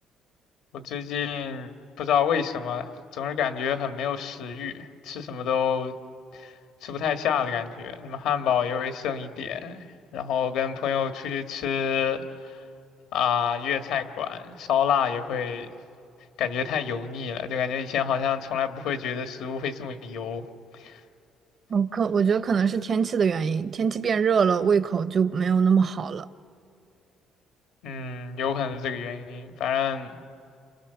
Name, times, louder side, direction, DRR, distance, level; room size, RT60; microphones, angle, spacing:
voice 1, 0.7-5.9 6.3-6.5 6.8-9.8 10.1-12.6 13.1-15.7 16.4-20.4 20.8-21.0 27.8-30.2, left 8 dB, 80° left, 1.6 m, -28 dB
voice 2, 21.7-26.3, right 6 dB, 40° right, 0.6 m, -23 dB
29.5 x 28.0 x 6.9 m
cardioid pair, 135°, 0 cm